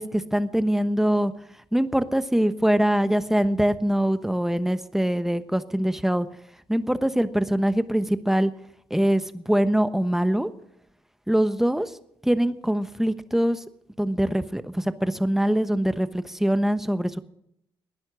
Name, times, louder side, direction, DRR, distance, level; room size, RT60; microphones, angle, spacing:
voice 1, 0.0-1.3 1.7-6.3 6.7-8.5 8.9-10.5 11.3-11.9 12.2-13.6 14.0-17.2, right 1 dB, 5° right, 12 dB, 1.1 m, -23 dB
19.0 x 10.5 x 6.3 m, 0.78 s
supercardioid pair, 65°, 11 cm